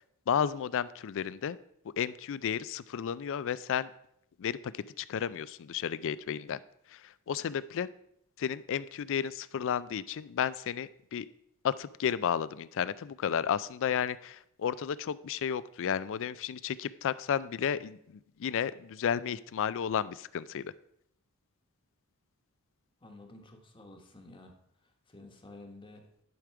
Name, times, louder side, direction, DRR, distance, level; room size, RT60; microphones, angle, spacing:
voice 1, 0.3-1.6 2.0-3.9 4.4-6.6 6.9-7.9 8.4-11.3 11.6-20.7, left 8 dB, 60° left, 18 dB, 0.4 m, -32 dB
voice 2, 23.0-24.5 24.8-26.1, left 2 dB, 25° left, 3 dB, 1.1 m, -51 dB
11.0 x 5.1 x 4.7 m, 0.73 s
head